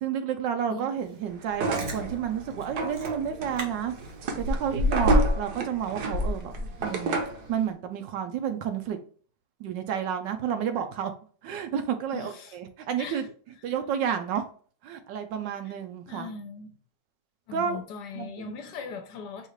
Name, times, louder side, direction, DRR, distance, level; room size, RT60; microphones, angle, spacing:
voice 1, 0.0-3.9 4.4-7.2 7.5-9.0 9.6-11.1 11.4-13.2 13.6-14.4 14.8-16.3 17.5-17.8 18.2-18.5, right 8 dB, 80° right, 1.3 m, -30 dB
Chewing mastication, 1.5-2.0 2.6-2.7 2.9-3.1 3.6-3.7 4.0-5.5 5.8-7.1 7.5-7.6, left 1 dB, 45° right, 0.9 m, -27 dB
sound 1, 1.5-7.5, right 3 dB, 65° right, 1.2 m, -31 dB
voice 2, 12.1-12.6 13.0-13.3 15.6-15.8 16.1-16.8 17.5-19.5, left 5 dB, 70° left, 1.2 m, -40 dB
5.4 x 2.5 x 3.1 m
omnidirectional pair, 2.0 m